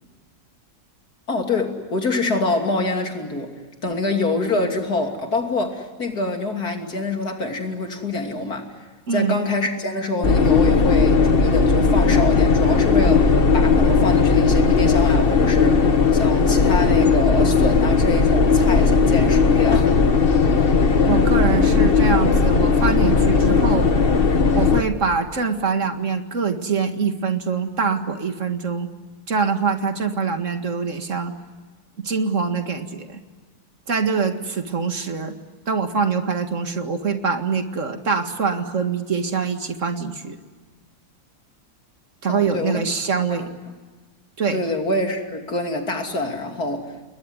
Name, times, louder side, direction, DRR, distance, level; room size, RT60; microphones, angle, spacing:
voice 1, 1.3-3.5 3.8-8.7 9.1-20.0 42.3-42.8 43.3-43.5 44.5-47.0, left 2 dB, 80° left, 3 dB, 3.5 m, -25 dB
voice 2, 9.1-9.4 21.1-23.9 24.5-28.9 29.3-31.3 32.0-33.2 33.9-35.4 35.7-40.4 42.2-43.5 44.4-44.6, right 5 dB, 55° right, 7 dB, 2.2 m, -24 dB
sound 1, 10.2-24.8, left 4 dB, 40° left, 1.5 m, -17 dB
29.5 x 21.0 x 9.7 m, 1.4 s
omnidirectional pair, 1.6 m